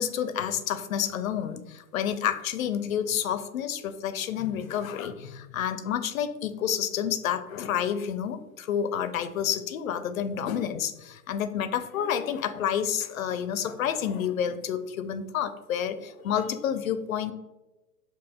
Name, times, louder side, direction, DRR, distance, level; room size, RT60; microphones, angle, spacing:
voice 1, 0.0-17.3, left 9 dB, 60° left, 11 dB, 0.5 m, -29 dB
5.3 x 2.8 x 2.2 m, 1.1 s
hypercardioid pair, 130°, 48 cm